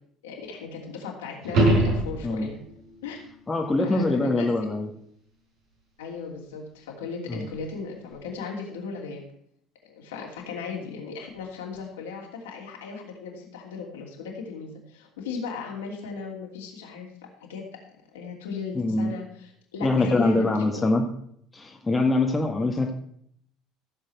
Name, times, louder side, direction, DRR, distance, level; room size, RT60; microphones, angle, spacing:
voice 1, 0.2-2.6 3.0-3.2 3.8-4.5 6.0-9.2 9.8-17.1 17.4-17.6 18.1-20.9, left 5 dB, 75° left, -1 dB, 2.8 m, -36 dB
sound 1, 1.4-2.7 7.5-7.6, right 2 dB, 60° right, 4.9 m, -22 dB
voice 2, 3.5-4.9 7.3-7.4 18.7-19.1 19.8-21.1 21.5-22.9, left 2 dB, 20° left, 3 dB, 1.5 m, -24 dB
15.0 x 7.3 x 4.7 m, 0.68 s
figure-of-eight pair, 65°, 0 cm